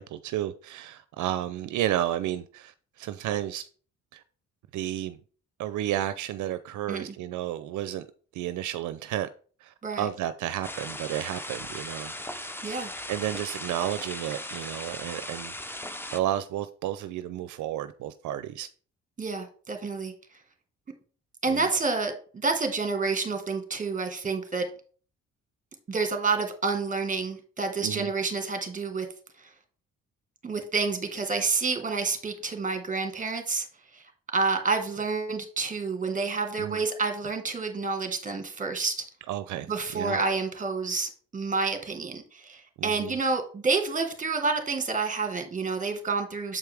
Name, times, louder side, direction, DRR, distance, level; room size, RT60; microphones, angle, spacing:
voice 1, 0.0-3.7 4.1-4.2 4.7-5.2 5.6-8.1 8.3-9.3 9.6-12.5 13.1-15.8 16.1-18.7 21.5-21.8 27.8-28.1 36.6-36.8 39.3-40.2 42.8-43.2, right 12 dB, 75° right, 0.5 m, -32 dB
sound 1, 10.6-16.2, left 1 dB, 5° left, 0.7 m, -38 dB
voice 2, 19.2-20.1 21.4-24.7 25.9-29.1 29.4-29.5 30.4-33.7 33.9-39.0 39.7-46.6, right 4 dB, 25° right, 1.5 m, -29 dB
7.3 x 4.7 x 3.4 m
cardioid pair, 90°, 30 cm